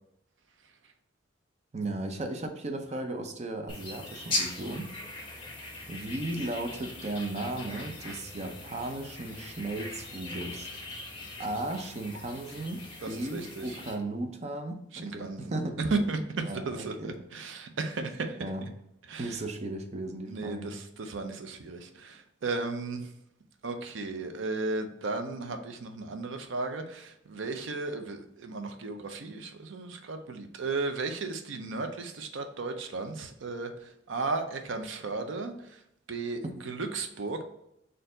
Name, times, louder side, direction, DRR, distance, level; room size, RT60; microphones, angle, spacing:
voice 1, 1.7-4.9 5.9-10.7 11.4-15.8 16.4-17.2 18.4-18.6 19.2-20.7 36.4-36.5, right 2 dB, 35° right, 5 dB, 0.5 m, -36 dB
sound 1, 3.7-13.9, left 2 dB, 30° left, 1.2 m, -40 dB
voice 2, 13.3-13.8 15.0-15.5 15.8-18.4 19.1-19.4 20.3-23.1 23.6-35.8 36.1-37.4, right 3 dB, 80° right, 6 dB, 0.6 m, -35 dB
4.3 x 2.6 x 3.8 m, 0.79 s
head